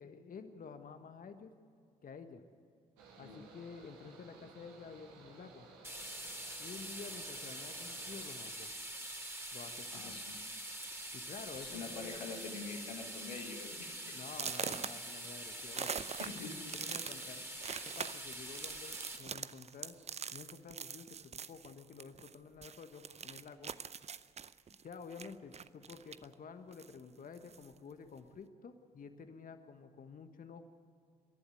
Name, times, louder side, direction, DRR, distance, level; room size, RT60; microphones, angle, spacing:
voice 1, 0.0-1.5 2.0-2.4 3.2-5.7 6.6-8.7 9.5-10.2 11.1-12.2 14.1-16.1 16.6-17.5 17.8-20.0 20.3-23.7 24.8-30.6, left 5 dB, 40° left, 8 dB, 1.4 m, -50 dB
Mechanical fan, 3.0-8.3, right 4 dB, 75° right, 2.3 m, -57 dB
sound 1, 5.8-19.2, right 1 dB, 10° right, 3.3 m, -45 dB
sound 2, 9.8-10.1 10.9-11.0 11.4-11.7 12.0-12.4 12.8-12.9 13.4-13.5 14.3-22.3 22.6-26.3 26.7-27.7, right 6 dB, 30° right, 0.7 m, -44 dB
voice 2, 9.9-10.4 11.6-14.0 15.8-15.9 16.2-16.6, left 5 dB, 85° left, 2 dB, 1.9 m, -45 dB
27.0 x 11.5 x 9.4 m, 2.3 s
figure-of-eight pair, 45°, 21 cm